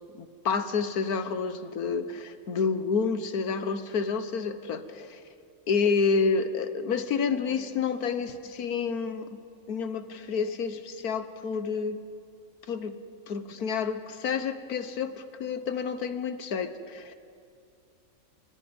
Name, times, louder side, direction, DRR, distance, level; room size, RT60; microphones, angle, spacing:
voice 1, 0.1-5.2 5.7-9.3 9.7-12.0 12.7-13.0 13.3-17.1, left 5 dB, 85° left, 10 dB, 1.7 m, -29 dB
29.0 x 25.5 x 5.4 m, 2.4 s
omnidirectional pair, 1.5 m